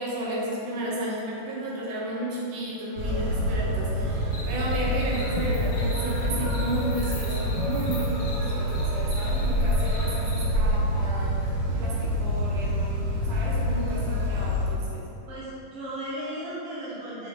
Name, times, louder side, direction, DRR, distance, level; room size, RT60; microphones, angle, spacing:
voice 1, 0.0-15.1, right 1 dB, 75° right, -5 dB, 2.7 m, -33 dB
sound 1, 3.0-14.6, equal, 40° right, 1.2 m, -26 dB
sound 2, 4.3-10.5, left 2 dB, 60° left, 1.6 m, -43 dB
sound 3, 4.9-5.0 5.4-5.7 6.3-6.9 7.6-8.2 9.1-9.7 10.0-10.7 11.7-12.3 13.3-13.4, left 5 dB, 75° left, 1.5 m, -39 dB
voice 2, 15.3-17.3, right 1 dB, 55° right, -8 dB, 2.5 m, -35 dB
6.6 x 6.3 x 3.6 m, 2.8 s
omnidirectional pair, 3.6 m